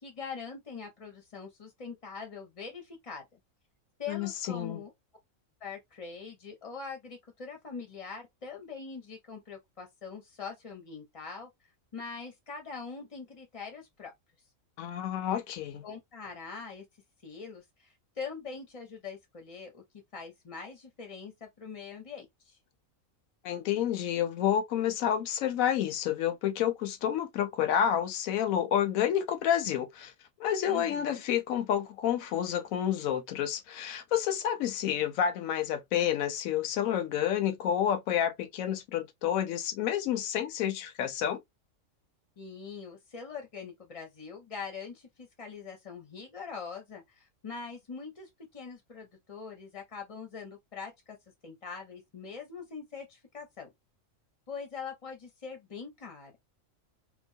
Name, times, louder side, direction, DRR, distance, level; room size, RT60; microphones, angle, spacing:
voice 1, 0.0-3.4 4.0-4.9 5.6-11.5 11.9-14.1 15.8-16.9 17.2-22.6 30.7-31.2 42.4-51.2 51.4-53.7 54.5-56.4, left 5 dB, 40° left, 0.5 m, -43 dB
voice 2, 4.1-4.8 14.8-15.8 23.4-30.1 30.4-41.4, left 10 dB, 85° left, 1.0 m, -29 dB
2.9 x 2.0 x 2.6 m
omnidirectional pair, 1.4 m